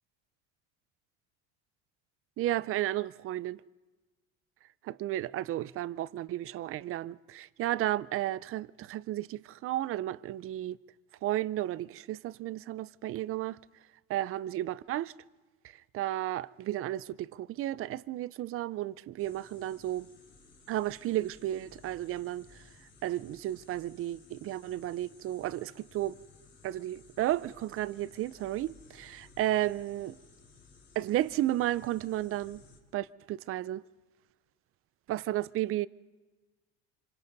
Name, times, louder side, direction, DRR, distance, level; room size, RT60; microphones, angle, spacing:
voice 1, 2.4-3.6 4.8-10.8 11.2-13.6 14.1-15.1 15.7-20.1 20.7-22.6 23.0-26.2 26.6-30.2 31.0-32.6 32.9-33.8 35.1-35.9, right 14 dB, 45° right, 0.5 m, -33 dB
sound 1, 19.2-32.8, left 4 dB, 75° left, 4.0 m, -58 dB
26.5 x 25.0 x 4.0 m
cardioid pair, 125°, 31 cm